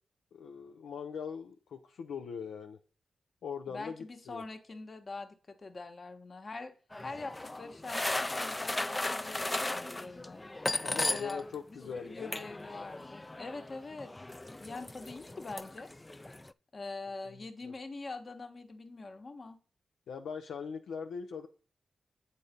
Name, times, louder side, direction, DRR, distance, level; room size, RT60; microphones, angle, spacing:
voice 1, 0.3-2.8 3.4-3.9 4.3-4.4 10.8-12.5 17.6-17.7 20.1-21.5, left 6 dB, 85° left, 0.5 m, -41 dB
voice 2, 3.7-6.8 7.0-10.4 10.9-14.1 14.5-15.9 16.7-19.6, left 3 dB, 50° left, 1.2 m, -44 dB
sound 1, 6.9-11.6 11.8-16.5, left 2 dB, 25° left, 0.4 m, -37 dB
8.2 x 4.1 x 5.1 m
supercardioid pair, 45°, 0 cm